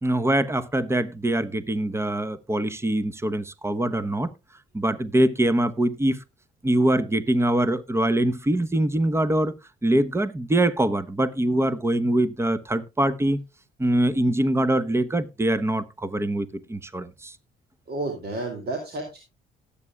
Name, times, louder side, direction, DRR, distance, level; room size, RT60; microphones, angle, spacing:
voice 1, 0.0-4.3 4.7-6.2 6.6-9.5 9.8-13.4 13.8-17.3, right 1 dB, 15° right, 0.9 m, -23 dB
voice 2, 17.9-19.2, right 2 dB, 55° right, 2.7 m, -31 dB
18.0 x 8.6 x 2.3 m
cardioid pair, 90°, 20 cm